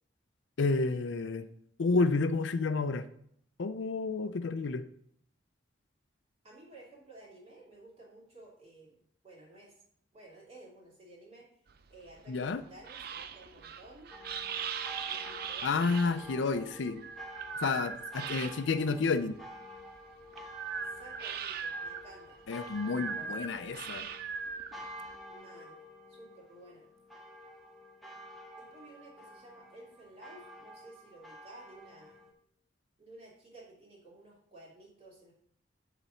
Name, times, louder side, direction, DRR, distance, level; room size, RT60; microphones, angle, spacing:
voice 1, 0.6-1.4 1.8-3.1 3.6-4.8 12.3-12.6 15.6-17.0 17.6-19.4 22.5-24.0, left 4 dB, 80° left, 11 dB, 0.5 m, -30 dB
voice 2, 6.4-9.8 10.1-11.5 11.9-14.1 15.0-16.5 18.2-18.5 19.0-19.1 20.9-22.4 22.9-23.8 25.3-25.8 26.1-26.9 28.6-32.3 33.0-35.3, right 1 dB, 35° right, -4 dB, 2.7 m, -54 dB
sound 1, 11.7-18.9 19.3-25.2, right 6 dB, 55° right, 0.5 m, -40 dB
sound 2, 14.1-32.3, equal, ahead, 0.9 m, -50 dB
7.2 x 4.0 x 5.6 m, 0.66 s
head